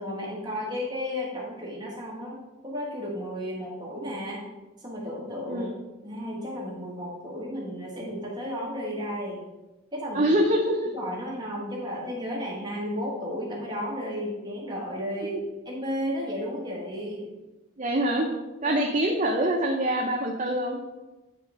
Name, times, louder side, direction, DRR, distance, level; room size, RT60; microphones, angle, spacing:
voice 1, 0.0-4.4 4.8-5.7 6.0-9.5 9.9-10.3 10.9-15.4 15.6-17.3 18.6-18.8, equal, 20° right, -4 dB, 1.3 m, -33 dB
voice 2, 10.1-10.9 15.2-15.3 17.8-18.3 18.6-20.9, right 1 dB, 35° right, 0 dB, 0.7 m, -25 dB
9.4 x 3.6 x 5.3 m, 1.1 s
head